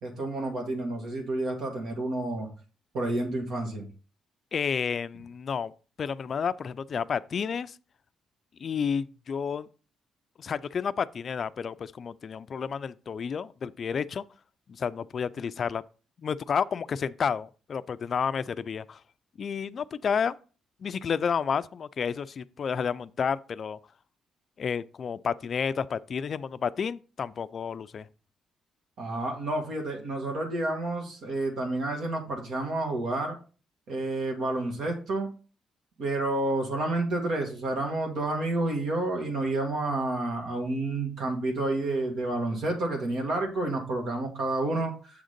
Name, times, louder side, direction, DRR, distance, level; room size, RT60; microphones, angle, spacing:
voice 1, 0.0-2.5 2.9-3.9 29.0-33.4 33.9-35.3 36.0-45.2, right 2 dB, 70° right, 1.9 m, -30 dB
voice 2, 4.5-5.7 6.0-7.8 8.6-9.7 10.4-14.2 14.7-15.8 16.2-19.0 19.4-20.4 20.8-23.8 24.6-28.1, left 6 dB, 50° left, 0.3 m, -31 dB
7.1 x 3.8 x 5.1 m
cardioid pair, 90°, 0 cm